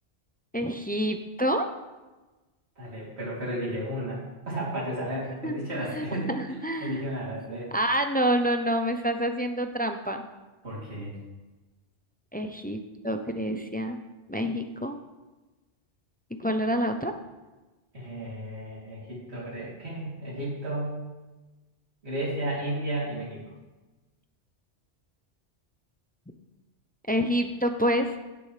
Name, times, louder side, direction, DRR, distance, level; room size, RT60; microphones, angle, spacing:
voice 1, 0.5-1.7 5.4-5.6 5.9-7.0 7.7-10.2 12.3-14.0 14.3-15.0 16.4-17.1 27.1-28.1, equal, 15° left, 6 dB, 0.4 m, -27 dB
voice 2, 2.8-7.7 10.6-11.1 17.9-21.0 22.0-23.4, right 1 dB, 60° right, -7 dB, 3.3 m, -33 dB
16.0 x 6.9 x 3.3 m, 1.2 s
omnidirectional pair, 1.2 m